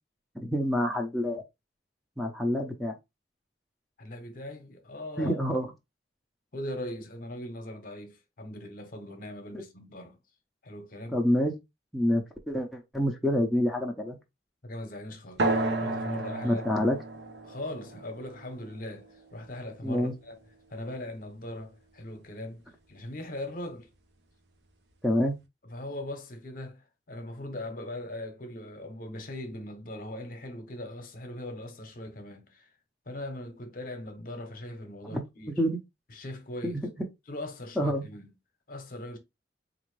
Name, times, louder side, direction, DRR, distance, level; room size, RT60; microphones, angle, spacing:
voice 1, 0.3-1.4 2.2-3.0 5.2-5.7 9.5-9.6 11.1-11.5 11.9-14.2 16.4-17.0 19.8-20.1 25.0-25.3 35.0-35.2 35.6-35.8 36.6-36.9 37.8-38.0, equal, ahead, 0.6 m, -27 dB
voice 2, 4.0-5.4 6.5-10.2 10.6-11.2 14.6-15.5 15.8-16.6 17.4-20.4 20.7-23.9 25.7-26.8 27.1-32.7 33.1-35.6 36.1-36.8 37.3-38.3 38.7-39.2, left 1 dB, 50° left, 0.8 m, -40 dB
sound 1, 15.4-20.4, right 2 dB, 75° right, 0.8 m, -33 dB
4.2 x 2.5 x 3.1 m
head